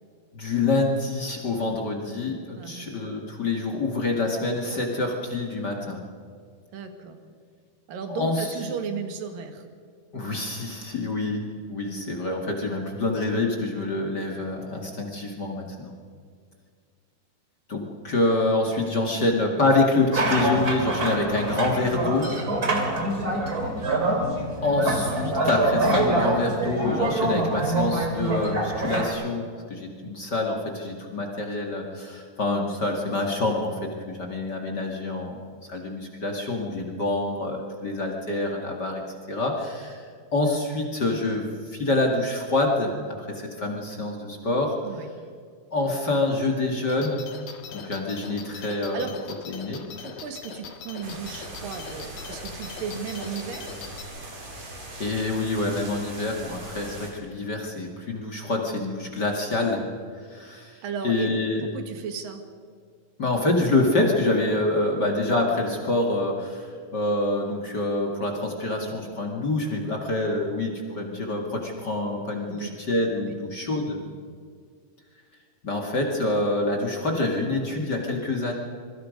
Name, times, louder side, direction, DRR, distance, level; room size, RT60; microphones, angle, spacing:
voice 1, 0.3-6.0 8.1-8.5 10.1-15.9 17.7-22.3 24.6-39.0 39.3-44.8 45.7-47.2 47.7-49.0 49.5-49.8 55.0-59.9 60.3-61.7 63.2-74.0 75.6-78.5, left 2 dB, 35° left, 1 dB, 2.2 m, -26 dB
voice 2, 2.6-2.9 6.7-7.2 7.9-9.6 44.8-45.1 48.9-49.1 50.0-53.8 60.8-61.3 61.6-62.4 72.5-72.7 73.2-73.4, right 6 dB, 80° right, 6 dB, 3.4 m, -35 dB
sound 1, 20.1-29.1, right 2 dB, 30° right, 2.8 m, -25 dB
sound 2, 46.9-54.0, left 6 dB, 85° left, 3.3 m, -41 dB
sound 3, 51.0-57.1, right 1 dB, 55° right, 5.4 m, -40 dB
26.0 x 22.5 x 5.3 m, 2.1 s
omnidirectional pair, 3.9 m